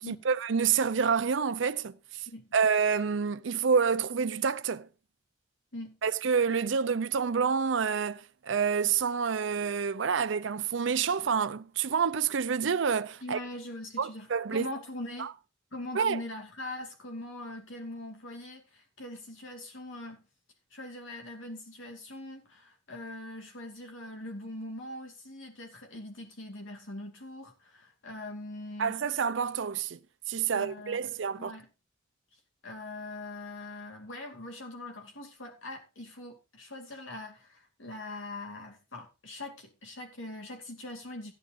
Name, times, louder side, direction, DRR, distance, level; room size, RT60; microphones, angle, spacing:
voice 1, 0.1-2.3 2.5-4.9 6.0-13.4 14.0-14.7 15.9-16.2 28.8-30.0 30.3-31.5, right 6 dB, 70° right, 0.5 m, -28 dB
voice 2, 13.2-15.3 15.7-20.2 20.7-29.0 30.5-31.7 32.6-41.3, left 1 dB, 80° left, 2.6 m, -42 dB
14.5 x 10.5 x 2.6 m
head